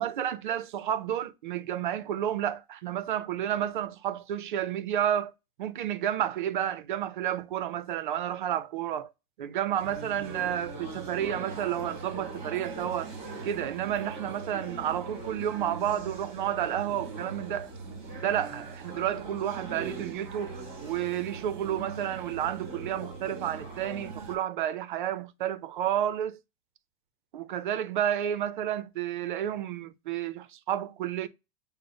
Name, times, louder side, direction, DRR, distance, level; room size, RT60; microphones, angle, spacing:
voice 1, 0.0-5.3 5.6-9.1 9.4-13.1 13.4-17.7 18.2-26.4 27.3-31.3, right 10 dB, 50° right, 0.5 m, -31 dB
sound 1, 9.8-24.4, right 3 dB, 15° right, 1.3 m, -40 dB
5.2 x 2.1 x 3.8 m
hypercardioid pair, 160°, 33 cm